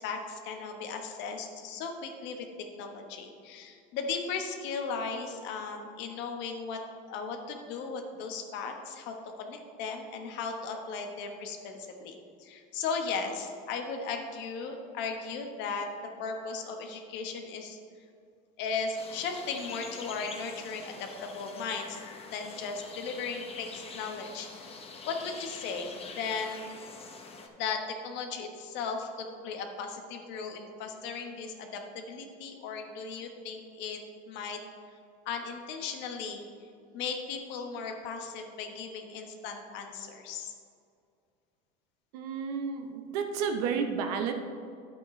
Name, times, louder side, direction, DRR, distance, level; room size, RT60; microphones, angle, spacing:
voice 1, 0.0-6.8 7.1-15.9 16.2-17.8 18.6-22.0 22.3-24.7 25.1-26.7 27.6-34.0 34.3-34.6 35.2-36.5 36.9-40.5, left 5 dB, 65° left, 4 dB, 1.3 m, -36 dB
sound 1, 18.9-27.5, left 4 dB, 30° left, 1.1 m, -45 dB
voice 2, 42.1-44.3, right 6 dB, 80° right, 5 dB, 0.8 m, -31 dB
9.9 x 8.4 x 3.2 m, 2.3 s
supercardioid pair, 100°, 20 cm